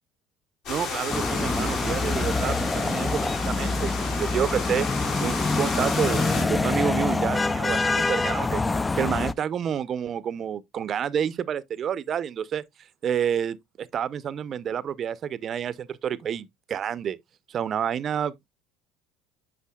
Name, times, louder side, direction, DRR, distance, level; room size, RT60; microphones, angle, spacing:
sound 1, 0.7-6.4, left 4 dB, 65° left, 3.4 m, -33 dB
voice 1, 0.7-4.9 5.2-8.6 9.0-12.6 13.0-17.2 17.5-18.5, right 8 dB, 40° right, 0.6 m, -29 dB
sound 2, 1.1-9.3, left 3 dB, 15° left, 0.3 m, -26 dB
8.4 x 5.6 x 2.3 m
supercardioid pair, 115°, 0 cm